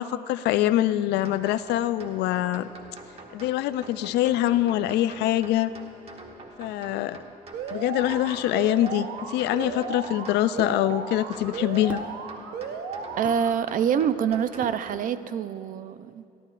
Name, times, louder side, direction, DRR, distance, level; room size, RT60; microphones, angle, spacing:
voice 1, 0.0-2.7 3.3-5.7 6.6-7.2 7.7-12.0, left 13 dB, 80° left, 14 dB, 0.4 m, -24 dB
sound 1, 1.2-15.0, right 2 dB, 35° right, 1.3 m, -46 dB
Alarm, 7.5-13.5, right 5 dB, 80° right, 1.0 m, -35 dB
sound 2, 10.6-10.8 11.9-12.1 13.2-13.4 14.6-14.8, right 1 dB, 10° right, 0.8 m, -39 dB
voice 2, 13.2-16.2, right 8 dB, 55° right, 13 dB, 0.5 m, -26 dB
27.5 x 11.5 x 2.5 m, 2.6 s
cardioid pair, 110°, 17 cm